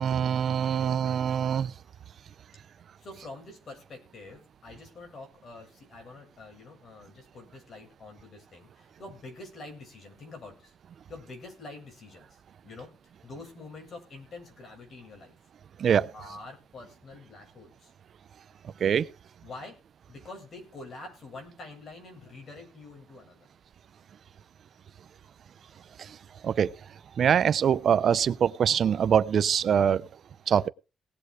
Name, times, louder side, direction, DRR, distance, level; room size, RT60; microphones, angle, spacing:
voice 1, 0.0-1.7 15.8-16.1 18.8-19.1 26.0-26.2 26.4-26.7 27.2-30.0 30.5-30.7, right 8 dB, 60° right, 0.7 m, -24 dB
voice 2, 3.0-10.7 11.1-12.9 13.2-15.4 16.1-17.9 19.4-19.8 20.1-23.5, left 3 dB, 50° left, 7.6 m, -46 dB
18.5 x 7.9 x 4.9 m
cardioid pair, 90°, 0 cm